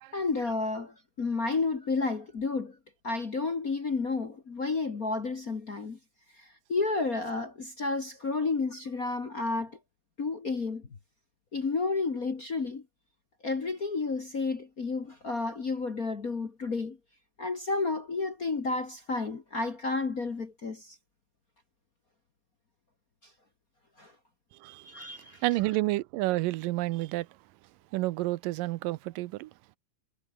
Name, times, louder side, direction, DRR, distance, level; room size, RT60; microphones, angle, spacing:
voice 1, 0.1-2.8 3.0-6.0 6.4-9.8 10.2-10.8 11.5-12.8 13.4-17.0 17.4-21.0 24.0-24.1 24.8-25.4, left 3 dB, 35° left, 1.5 m, -31 dB
voice 2, 25.4-27.3 27.9-29.5, right 18 dB, 85° right, 2.4 m, -30 dB
omnidirectional pair, 3.9 m